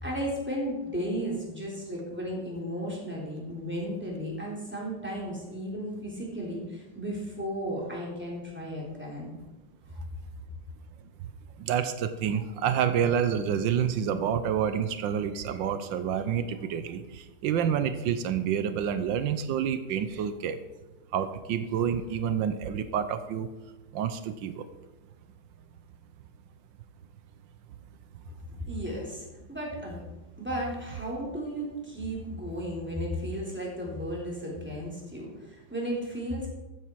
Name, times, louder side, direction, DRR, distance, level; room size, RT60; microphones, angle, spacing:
voice 1, 0.0-9.4 28.7-30.0 30.4-36.5, equal, 5° right, -3 dB, 3.6 m, -34 dB
voice 2, 11.6-20.6 21.1-23.5 23.9-24.6, right 8 dB, 85° right, 11 dB, 1.5 m, -28 dB
15.0 x 9.3 x 4.6 m, 1.1 s
omnidirectional pair, 2.0 m